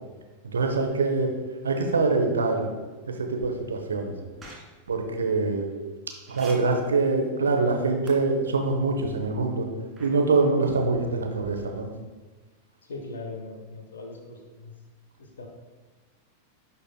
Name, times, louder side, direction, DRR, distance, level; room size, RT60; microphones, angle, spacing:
voice 1, 0.5-1.3 1.6-2.7 3.2-4.1 4.9-5.7 6.3-9.7 10.0-11.9, right 3 dB, 70° right, 3 dB, 0.8 m, -24 dB
sound 1, 4.4-4.6 6.3-6.5 8.1-8.2 10.0-10.1, right 3 dB, 15° right, 1.8 m, -42 dB
voice 2, 12.8-14.7 15.2-15.5, left 3 dB, 65° left, 2 dB, 0.8 m, -40 dB
11.0 x 4.0 x 2.3 m, 1.3 s
figure-of-eight pair, 90°, 0 cm